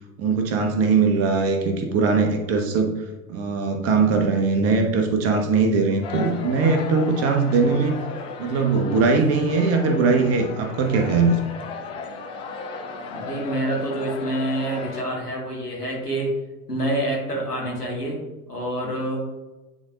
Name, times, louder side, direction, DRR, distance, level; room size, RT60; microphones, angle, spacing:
voice 1, 0.2-2.9 3.3-8.0 8.4-11.4, right 4 dB, 30° right, 4 dB, 1.0 m, -20 dB
sound 1, 6.0-15.0, left 3 dB, 15° left, 0.3 m, -35 dB
voice 2, 13.1-16.3 16.7-18.2 18.5-19.2, right 1 dB, 90° left, -2 dB, 1.9 m, -27 dB
9.2 x 4.0 x 2.5 m, 1.1 s
figure-of-eight pair, 85°, 45 cm